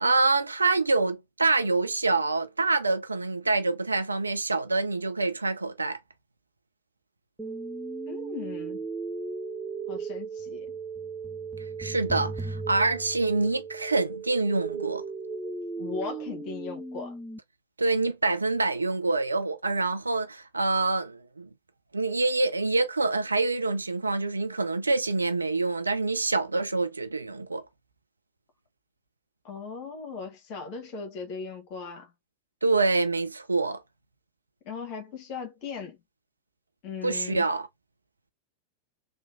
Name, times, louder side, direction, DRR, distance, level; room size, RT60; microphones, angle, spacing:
voice 1, 0.0-6.0 11.8-15.0 17.8-21.5 21.9-27.6 32.6-33.8 37.0-37.7, right 3 dB, 80° right, 0.4 m, -26 dB
sound 1, 7.4-17.4, right 4 dB, 10° right, 0.4 m, -36 dB
voice 2, 8.1-8.8 9.9-10.8 15.8-17.1 29.4-32.1 34.6-36.0 36.8-37.4, left 5 dB, 40° left, 1.1 m, -38 dB
3.1 x 2.2 x 2.6 m
figure-of-eight pair, 90°, 0 cm